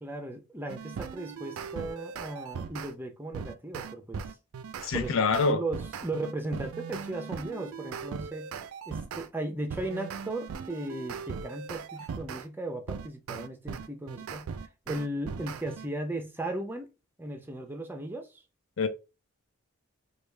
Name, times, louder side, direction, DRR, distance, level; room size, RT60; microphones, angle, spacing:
voice 1, 0.0-4.4 4.9-8.5 8.9-16.9 17.2-18.4, right 1 dB, 10° right, 0.5 m, -36 dB
sound 1, 0.7-2.9 3.3-9.3 9.7-12.5 12.9-15.9, right 6 dB, 80° right, 0.4 m, -39 dB
voice 2, 4.8-5.6 18.8-18.9, left 5 dB, 65° left, 0.5 m, -25 dB
3.3 x 2.4 x 3.2 m
head